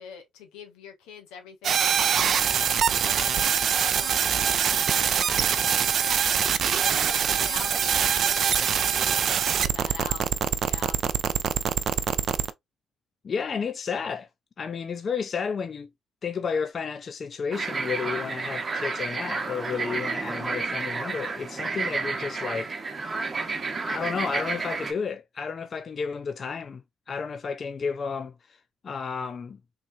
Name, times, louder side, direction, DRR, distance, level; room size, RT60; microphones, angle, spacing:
voice 1, 0.0-3.3 3.9-5.5 6.0-10.2 10.6-11.0, left 6 dB, 90° left, 1.0 m, -44 dB
sound 1, 1.6-12.5, right 8 dB, 60° right, 0.4 m, -24 dB
voice 2, 13.2-14.3 14.6-15.9 16.2-22.7 23.0-23.1 23.9-26.8 27.1-28.6 28.8-29.6, left 6 dB, 50° left, 0.3 m, -32 dB
sound 2, 17.5-24.9, right 4 dB, 35° right, 0.8 m, -31 dB
3.3 x 3.0 x 2.5 m
supercardioid pair, 65°, 0 cm